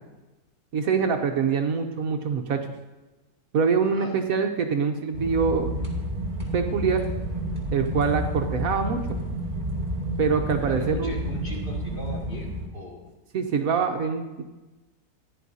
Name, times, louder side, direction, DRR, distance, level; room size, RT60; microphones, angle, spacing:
voice 1, 0.7-2.7 3.5-5.7 6.5-7.0 7.7-9.2 10.2-11.1 13.3-14.4, right 5 dB, 65° right, 5 dB, 1.2 m, -24 dB
sound 1, 5.1-12.7, right 1 dB, 25° right, 2.1 m, -30 dB
voice 2, 10.6-13.1, equal, 35° left, -3 dB, 2.4 m, -39 dB
16.0 x 10.5 x 2.7 m, 1.1 s
omnidirectional pair, 1.7 m